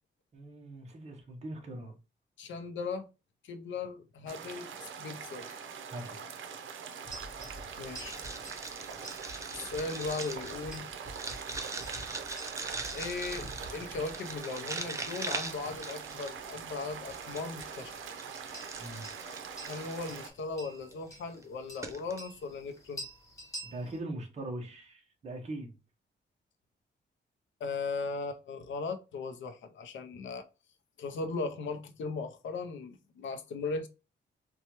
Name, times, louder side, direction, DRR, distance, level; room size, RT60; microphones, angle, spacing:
voice 1, 0.3-1.9 5.9-6.2 18.8-19.0 23.6-25.7, right 1 dB, 35° right, 0.8 m, -41 dB
voice 2, 2.4-3.1 3.4-5.6 7.8-8.2 9.5-10.9 12.9-17.9 19.7-23.0 27.6-30.5 31.0-33.9, left 4 dB, 75° left, 0.6 m, -38 dB
sound 1, 4.3-20.3, right 6 dB, 85° right, 0.6 m, -43 dB
sound 2, 7.0-24.0, right 1 dB, 15° left, 1.2 m, -49 dB
sound 3, 8.0-16.5 17.1-20.2 20.9-21.1 21.4-21.5 21.8-22.2, right 3 dB, 15° right, 0.4 m, -41 dB
4.2 x 2.3 x 2.9 m
wide cardioid pair, 170°, 20 cm